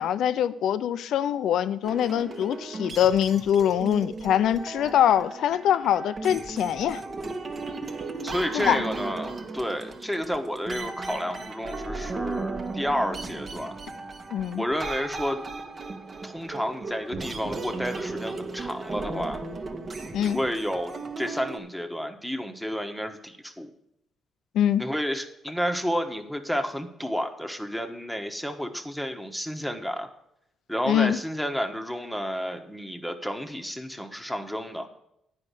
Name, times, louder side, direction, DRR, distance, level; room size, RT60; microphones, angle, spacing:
voice 1, 0.0-7.0 8.5-8.8 14.3-14.6 20.1-20.4 24.5-24.8 30.9-31.2, left 10 dB, 75° left, 14 dB, 0.4 m, -23 dB
sound 1, 1.8-21.6, right 3 dB, 40° right, 1.2 m, -36 dB
voice 2, 8.2-13.8 14.6-15.4 16.2-19.4 20.2-23.7 24.8-30.1 30.7-34.9, equal, ahead, 5 dB, 1.1 m, -31 dB
9.8 x 5.2 x 8.2 m, 0.80 s
cardioid pair, 90°, 0 cm